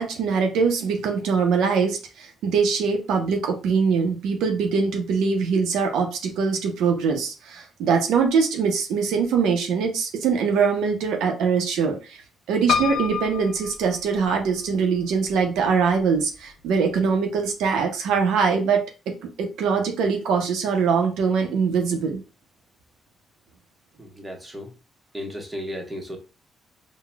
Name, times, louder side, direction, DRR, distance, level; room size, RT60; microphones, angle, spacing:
voice 1, 0.0-12.2 12.5-22.2, right 5 dB, 85° right, 3 dB, 0.5 m, -23 dB
Piano, 12.7-14.7 15.3-16.0 16.3-16.4 16.6-16.7, left 7 dB, 65° left, 0.3 m, -28 dB
voice 2, 24.0-24.7 25.1-26.2, equal, 10° right, 1 dB, 0.9 m, -34 dB
3.9 x 2.0 x 2.2 m, 0.32 s
cardioid pair, 90°, 0 cm